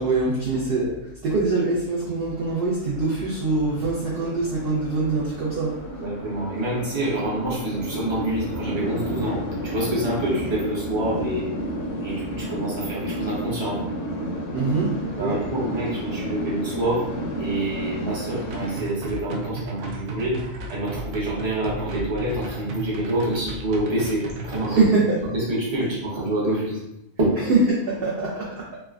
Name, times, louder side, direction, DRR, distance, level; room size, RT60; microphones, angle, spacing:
voice 1, 0.0-6.0 14.5-15.4 24.7-25.2 27.5-28.7, right 3 dB, 60° right, -5 dB, 0.6 m, -23 dB
sound 1, 2.4-18.8, equal, 65° left, 0.7 m, -32 dB
voice 2, 6.0-11.5 12.0-13.8 15.2-17.0 17.4-20.4 20.7-24.8 25.3-26.8 27.2-27.3, right 1 dB, 25° right, -6 dB, 0.7 m, -27 dB
sound 2, 18.3-24.9, right 2 dB, 75° right, 1.0 m, -34 dB
3.2 x 2.1 x 2.3 m, 0.86 s
omnidirectional pair, 1.4 m